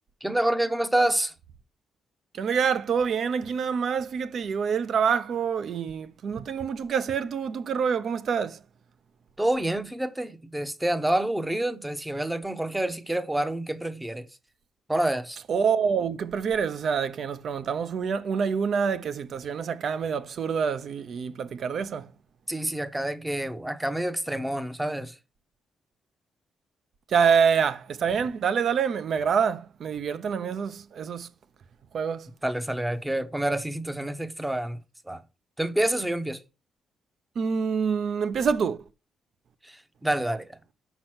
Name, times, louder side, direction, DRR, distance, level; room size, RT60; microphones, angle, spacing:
voice 1, 0.2-1.3 9.4-14.2 14.9-15.4 22.5-25.1 32.4-34.8 35.1-35.2 35.6-36.4 39.6-40.5, right 1 dB, 10° right, 0.8 m, -28 dB
voice 2, 2.3-8.6 15.5-22.1 27.1-31.3 31.9-32.3 37.4-38.8, right 6 dB, 60° right, 0.7 m, -26 dB
6.1 x 5.3 x 6.0 m
cardioid pair, 115°, 0 cm